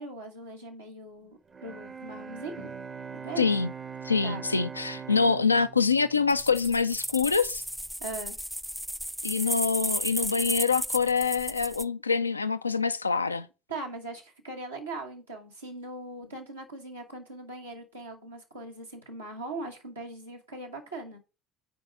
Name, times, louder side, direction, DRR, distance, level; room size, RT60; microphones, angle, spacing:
voice 1, 0.0-2.7 3.1-3.6 4.2-4.4 8.0-8.3 13.7-21.2, right 2 dB, 85° right, 1.3 m, -40 dB
Bowed string instrument, 1.5-7.5, right 6 dB, 30° right, 0.7 m, -42 dB
voice 2, 3.4-3.7 4.0-7.6 9.2-13.5, left 5 dB, 85° left, 0.3 m, -25 dB
sound 1, 6.3-11.8, equal, ahead, 0.4 m, -34 dB
6.0 x 4.7 x 5.6 m
figure-of-eight pair, 55°, 0 cm